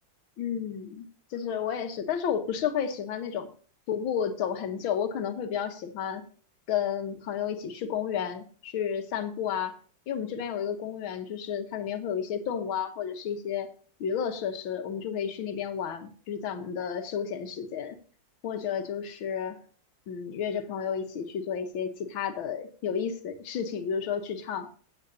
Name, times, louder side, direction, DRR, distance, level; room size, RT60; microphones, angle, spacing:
voice 1, 0.4-1.1 1.3-3.5 3.9-6.2 6.7-9.8 10.1-13.7 14.0-18.0 18.4-19.6 20.1-24.7, left 8 dB, 80° left, 8 dB, 1.9 m, -31 dB
15.0 x 8.8 x 2.7 m, 0.44 s
omnidirectional pair, 2.2 m